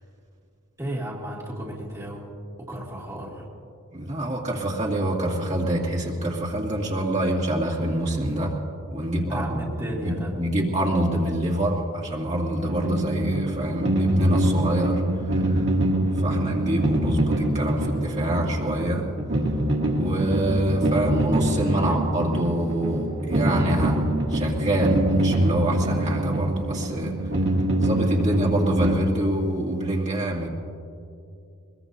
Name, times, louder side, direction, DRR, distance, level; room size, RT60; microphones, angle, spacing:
voice 1, 0.8-2.3 2.7-3.5 9.2-10.4, right 1 dB, 15° right, -6 dB, 2.3 m, -34 dB
voice 2, 3.9-8.5 8.9-9.6 10.0-15.0 15.3-15.7 16.1-19.1 19.9-24.0 24.3-27.2 27.8-30.5, right 1 dB, 30° right, -3 dB, 2.2 m, -26 dB
sound 1, 12.6-28.9, right 1 dB, 55° right, 1.5 m, -24 dB
22.5 x 22.0 x 2.7 m, 2.5 s
head